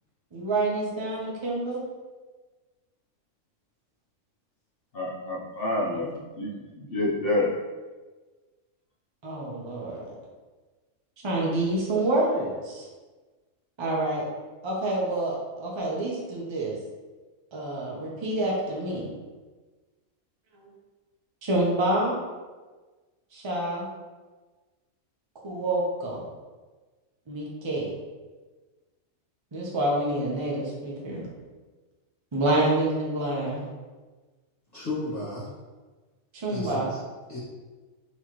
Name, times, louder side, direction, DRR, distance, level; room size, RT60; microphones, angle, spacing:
voice 1, 0.3-1.8 6.0-6.1 9.2-10.2 11.2-12.9 13.8-14.2 14.6-16.8 17.5-19.1 20.5-20.7 21.4-22.1 23.3-23.9 25.4-26.3 27.3-27.9 29.5-31.3 32.3-33.7 36.3-36.9, right 1 dB, 25° right, -4 dB, 0.7 m, -27 dB
voice 2, 4.9-6.5 6.8-7.5, left 2 dB, 50° left, -4 dB, 0.8 m, -28 dB
voice 3, 34.7-35.5 36.5-37.0 37.3-37.4, left 2 dB, 30° left, -12 dB, 1.7 m, -33 dB
4.2 x 3.1 x 3.0 m, 1.3 s
omnidirectional pair, 1.4 m